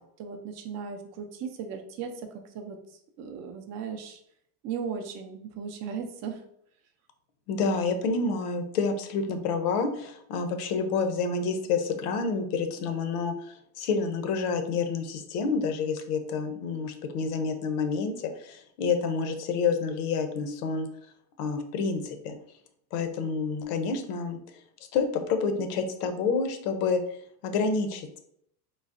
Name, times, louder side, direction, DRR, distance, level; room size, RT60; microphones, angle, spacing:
voice 1, 0.2-2.1 2.5-2.8 3.2-4.2 4.6-6.4, right 6 dB, 35° right, 5 dB, 0.4 m, -36 dB
voice 2, 7.5-20.9 21.4-22.4 22.9-24.4 24.9-27.0 27.4-28.2, left 4 dB, 70° left, 7 dB, 0.7 m, -28 dB
3.8 x 2.0 x 2.4 m, 0.70 s
supercardioid pair, 120°, 48 cm